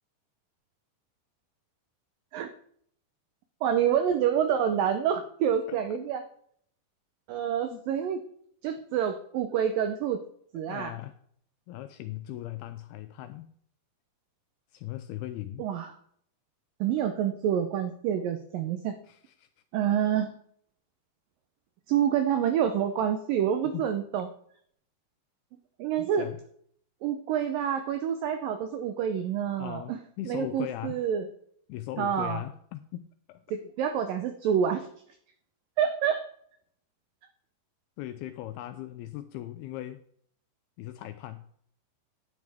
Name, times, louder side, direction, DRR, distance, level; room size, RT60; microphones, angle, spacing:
voice 1, 3.6-6.2 7.3-8.2 8.6-10.2 10.5-10.9 15.6-16.0 16.8-19.0 19.7-20.3 21.9-24.3 25.8-26.3 27.0-30.0 30.3-31.3 32.0-32.4 33.5-34.9 35.8-36.3, right 9 dB, 90° right, 8 dB, 1.9 m, -27 dB
voice 2, 5.7-6.0 7.7-7.8 10.7-11.2 11.7-13.5 14.7-15.6 19.1-19.5 23.7-23.9 26.0-26.4 29.6-31.1 31.7-33.4 38.0-40.0 40.8-41.4, left 14 dB, 85° left, 10 dB, 2.2 m, -39 dB
11.0 x 10.5 x 3.5 m, 0.64 s
omnidirectional pair, 4.9 m